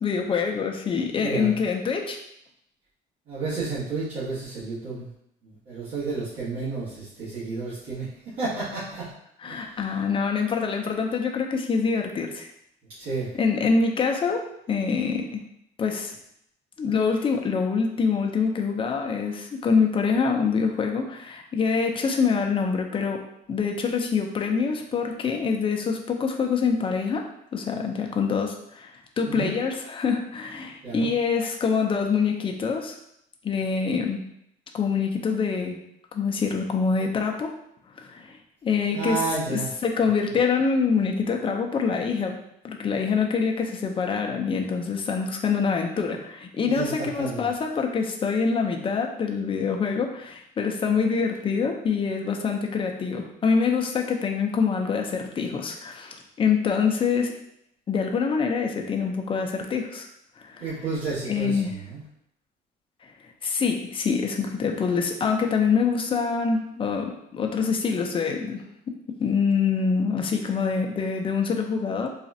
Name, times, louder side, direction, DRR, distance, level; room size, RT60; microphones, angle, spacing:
voice 1, 0.0-2.2 9.4-12.5 13.4-15.4 15.8-16.1 16.8-23.2 23.5-27.2 27.5-33.0 33.4-34.2 34.7-35.8 36.1-37.6 38.0-38.4 38.6-39.2 39.5-42.4 42.6-57.4 57.9-60.1 60.4-60.7 61.3-61.8 63.4-72.1, left 5 dB, 30° left, 2 dB, 0.5 m, -25 dB
voice 2, 1.2-1.6 3.3-5.1 5.4-8.1 8.4-9.1 9.4-9.6 13.0-13.3 29.2-29.5 30.8-31.1 38.9-39.7 46.6-47.5 60.6-62.0, right 4 dB, 65° right, -12 dB, 1.5 m, -31 dB
4.0 x 2.4 x 2.7 m, 0.75 s
cardioid pair, 110°, 17 cm